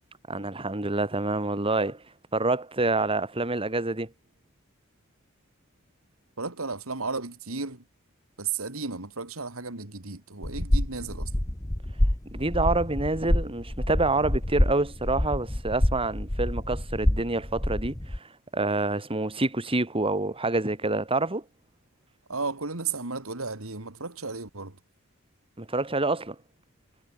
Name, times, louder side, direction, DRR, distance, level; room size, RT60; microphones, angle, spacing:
voice 1, 0.3-2.0 2.3-4.1 12.3-18.2 18.5-21.4 25.6-26.4, right 2 dB, 25° right, 2.5 m, -27 dB
voice 2, 6.4-7.8 8.4-11.3 22.3-24.8, right 4 dB, 75° right, 2.7 m, -34 dB
sound 1, 10.4-18.2, left 1 dB, 15° left, 1.0 m, -27 dB
head